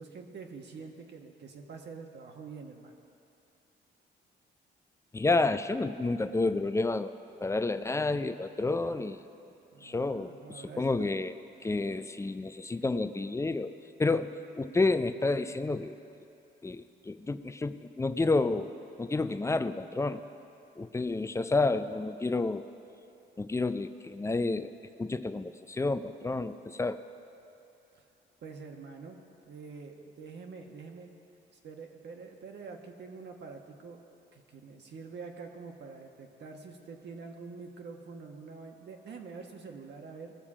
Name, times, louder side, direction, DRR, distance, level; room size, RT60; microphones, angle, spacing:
voice 1, 0.0-2.9 9.7-11.1 12.8-12.9 27.9-28.0 28.4-29.2 29.5-31.1 31.6-34.0 34.3-40.3, right 4 dB, 60° right, 2 dB, 1.4 m, -46 dB
voice 2, 5.1-7.1 7.4-9.2 9.8-11.3 11.6-13.7 14.0-16.0 16.6-18.7 19.0-20.2 20.8-22.6 23.4-24.7 25.0-27.0, left 3 dB, 15° left, 11 dB, 0.5 m, -30 dB
19.0 x 7.1 x 4.9 m, 2.8 s
cardioid pair, 90°, 20 cm